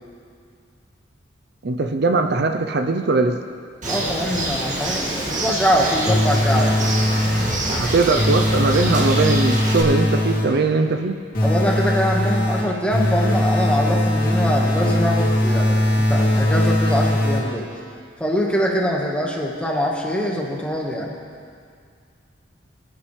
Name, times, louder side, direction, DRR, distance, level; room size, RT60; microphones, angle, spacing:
voice 1, 1.6-3.4 7.8-11.2, right 3 dB, 60° right, 5 dB, 0.6 m, -20 dB
Bird, 3.8-9.8, right 1 dB, 45° right, 2.1 m, -26 dB
voice 2, 3.9-6.9 11.4-17.7 18.2-21.1, equal, 5° left, -2 dB, 1.5 m, -23 dB
sound 1, 6.0-7.7 8.2-10.7 11.3-17.7, left 1 dB, 50° left, 2.4 m, -20 dB
24.0 x 8.8 x 3.3 m, 2.2 s
head